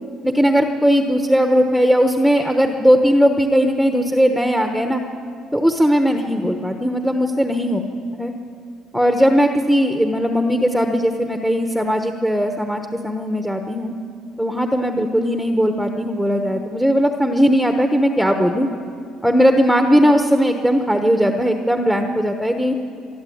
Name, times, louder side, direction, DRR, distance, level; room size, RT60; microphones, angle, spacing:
voice 1, 0.2-5.0 5.5-7.8 8.1-8.3 8.9-13.9 14.4-18.7 19.2-22.7, equal, ahead, 5 dB, 1.1 m, -18 dB
25.5 x 12.0 x 8.6 m, 2.4 s
cardioid pair, 110°, 0 cm